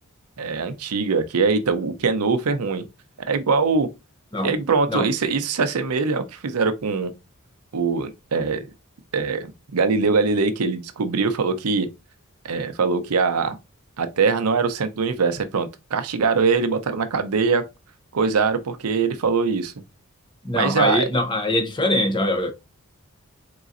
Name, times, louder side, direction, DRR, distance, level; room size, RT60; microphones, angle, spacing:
voice 1, 0.4-2.9 3.3-3.9 4.4-7.1 7.7-8.7 9.1-11.9 12.4-13.6 14.0-17.6 18.1-19.7 20.5-21.1, right 4 dB, 85° right, 0.6 m, -22 dB
voice 2, 20.4-22.5, left 1 dB, 20° left, 0.7 m, -22 dB
4.0 x 3.7 x 2.5 m
head